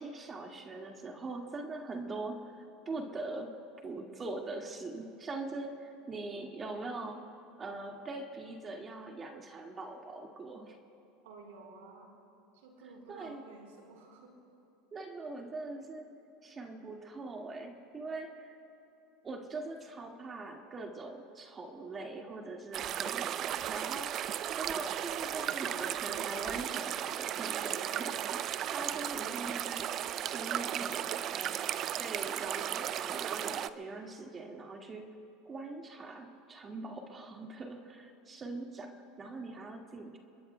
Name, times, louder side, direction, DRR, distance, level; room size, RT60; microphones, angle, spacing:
voice 1, 0.0-3.6 3.8-7.3 7.6-10.8 13.1-13.5 14.9-16.0 16.4-18.5 19.2-31.7 32.0-35.0 35.5-40.2, right 2 dB, 25° right, 2 dB, 1.9 m, -42 dB
voice 2, 11.2-12.1 12.5-14.3, right 3 dB, 80° right, 1 dB, 4.3 m, -52 dB
sound 1, 22.7-33.7, right 11 dB, 45° right, 0.5 m, -35 dB
29.0 x 21.5 x 2.3 m, 2.8 s
supercardioid pair, 100°, 0 cm